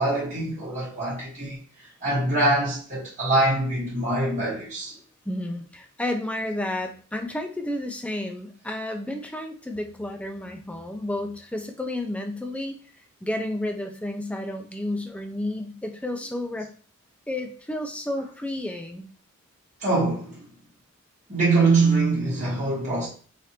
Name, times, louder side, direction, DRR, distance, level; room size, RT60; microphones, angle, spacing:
voice 1, 0.0-1.6 2.0-4.9 19.8-20.5 21.3-23.1, right 2 dB, 35° right, 1.3 m, -23 dB
voice 2, 5.3-12.8 13.2-16.7 17.3-19.1, left 1 dB, 5° left, 0.4 m, -31 dB
3.3 x 2.5 x 2.8 m
head